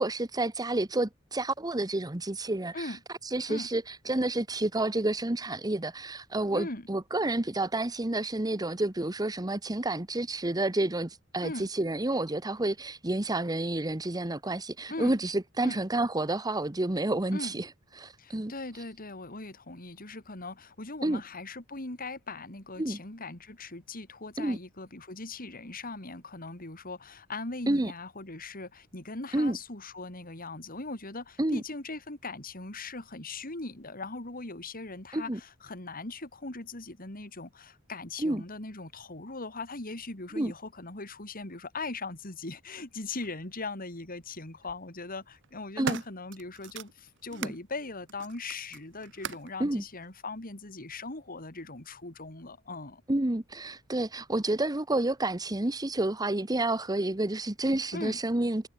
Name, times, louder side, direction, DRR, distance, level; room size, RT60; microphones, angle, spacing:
voice 1, 0.0-3.0 3.3-17.7 18.0-18.5 21.0-21.2 22.8-23.0 24.4-24.6 27.7-27.9 29.3-29.6 31.4-31.6 35.1-35.4 38.2-38.4 40.4-40.5 45.8-46.0 47.4-47.5 49.6-49.8 53.1-58.7, right 2 dB, 20° right, 1.1 m, -29 dB
voice 2, 6.5-6.9 11.4-11.7 14.9-15.2 15.6-15.8 17.3-17.5 18.2-53.0 57.9-58.2, left 3 dB, 45° left, 3.6 m, -40 dB
sound 1, 43.2-43.3 44.4-44.8 45.3-47.6 48.1-49.6 50.4-50.5, right 6 dB, 60° right, 2.1 m, -40 dB
head